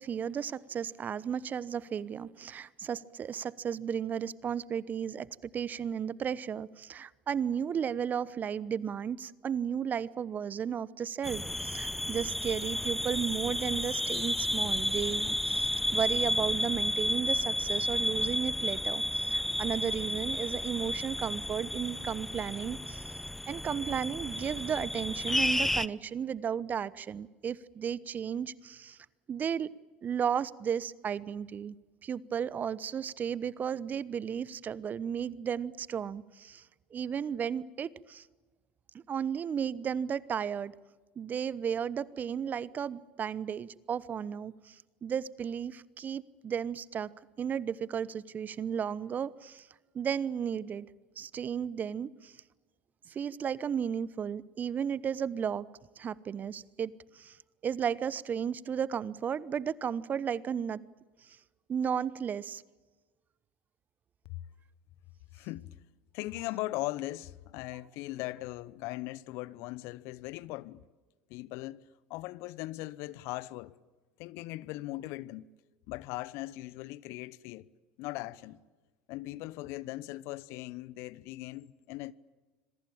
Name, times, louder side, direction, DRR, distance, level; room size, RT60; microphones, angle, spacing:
voice 1, 0.0-23.1 23.5-29.0 29.3-29.7 30.0-31.8 32.0-36.7 36.9-38.3 39.1-40.7 41.2-47.1 47.4-49.7 49.9-50.9 51.2-52.4 53.1-55.7 56.0-57.4 57.6-60.8 61.2-61.4 61.7-62.6, right 8 dB, 35° right, 0.9 m, -34 dB
sound 1, 11.2-25.9, left 1 dB, 5° left, 0.8 m, -32 dB
voice 2, 65.3-65.7 66.1-70.8 71.3-71.8 72.1-73.7 74.2-75.5 75.9-77.7 78.0-78.6 79.1-82.1, left 18 dB, 55° left, 0.9 m, -39 dB
27.0 x 22.5 x 8.8 m
figure-of-eight pair, 75°, 5 cm